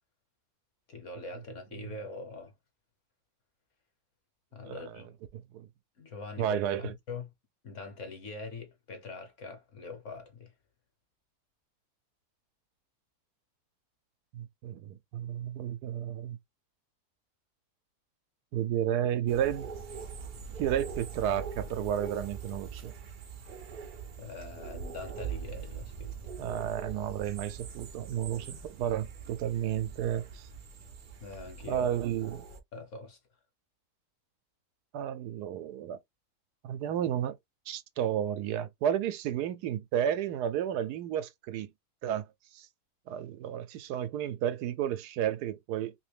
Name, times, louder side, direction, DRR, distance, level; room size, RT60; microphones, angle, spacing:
voice 1, 0.9-2.5 4.5-5.1 6.0-7.3 7.6-10.5 24.2-26.1 31.2-32.0 32.7-33.2, left 3 dB, 55° left, 1.2 m, -43 dB
voice 2, 6.4-6.9 14.3-16.4 18.5-19.7 20.6-22.9 26.4-30.5 31.7-32.4 34.9-36.0 36.6-37.3 37.7-41.7 42.0-42.3 42.5-42.7 43.1-45.9, right 10 dB, 90° right, 1.2 m, -32 dB
sound 1, 19.3-32.6, right 6 dB, 60° right, 0.5 m, -42 dB
2.9 x 2.8 x 3.3 m
omnidirectional pair, 1.7 m